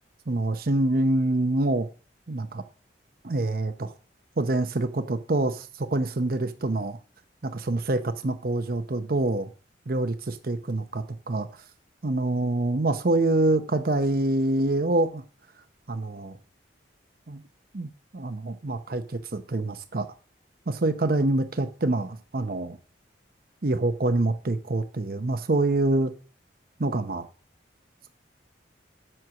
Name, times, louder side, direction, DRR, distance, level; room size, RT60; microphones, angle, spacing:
voice 1, 0.3-1.9 2.3-2.6 3.2-3.9 4.4-7.0 7.4-9.5 9.9-11.6 12.0-15.2 15.9-16.4 17.3-17.4 17.7-20.1 20.7-22.8 23.6-26.1 26.8-27.2, right 2 dB, 50° right, 9 dB, 0.7 m, -26 dB
7.7 x 7.7 x 5.9 m, 0.38 s
head